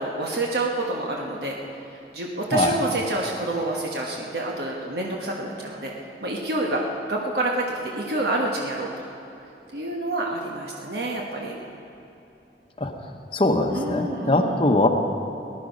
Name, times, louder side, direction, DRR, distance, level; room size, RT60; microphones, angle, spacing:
voice 1, 0.0-1.6 1.9-5.9 6.2-6.8 7.1-8.9 9.7-11.5 13.7-14.6, right 2 dB, 65° right, -1 dB, 1.3 m, -28 dB
voice 2, 13.3-14.9, left 2 dB, 30° left, 4 dB, 1.0 m, -21 dB
19.0 x 11.0 x 5.3 m, 2.8 s
head